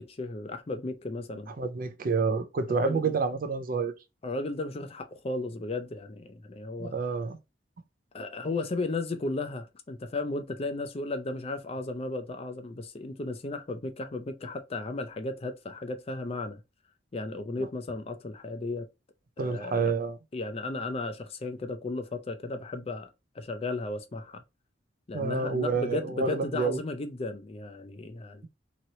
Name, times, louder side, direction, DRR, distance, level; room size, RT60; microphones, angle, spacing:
voice 1, 0.0-1.5 2.7-3.1 4.2-6.9 8.1-16.6 17.1-18.9 19.4-19.9 20.3-23.1 23.4-24.4 25.1-28.5, left 2 dB, 35° left, 0.5 m, -35 dB
voice 2, 1.6-3.9 6.8-7.4 19.4-20.2 25.1-26.8, right 4 dB, 50° right, 0.4 m, -28 dB
3.0 x 2.9 x 2.7 m
head